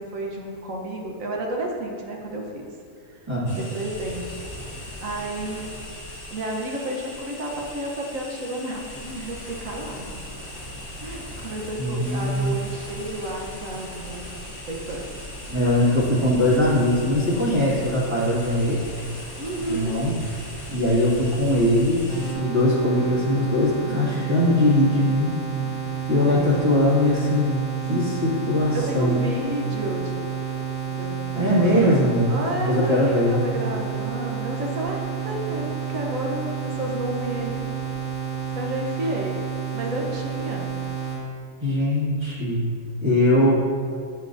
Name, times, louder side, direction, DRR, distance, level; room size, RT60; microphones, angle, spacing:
voice 1, 0.0-2.7 3.1-3.3 3.6-4.4 5.0-5.6 6.3-10.2 11.0-14.3 14.7-15.3 19.4-20.0 25.5-25.7 26.3-26.7 28.7-30.2 30.9-31.2 31.5-37.7 38.5-39.4 39.7-40.7 43.4-43.5, right 1 dB, 65° right, 0 dB, 1.3 m, -31 dB
voice 2, 3.3-3.6 11.8-12.5 15.5-18.8 19.6-20.2 20.7-25.4 26.1-27.6 27.9-29.3 31.4-33.4 41.6-42.6 43.0-43.5, left 1 dB, 20° right, -8 dB, 1.9 m, -21 dB
sound 1, 3.5-22.3, left 1 dB, 40° left, 1.9 m, -38 dB
sound 2, 22.1-41.2, right 7 dB, 40° right, 1.7 m, -30 dB
8.1 x 7.0 x 2.6 m, 2.2 s
omnidirectional pair, 1.5 m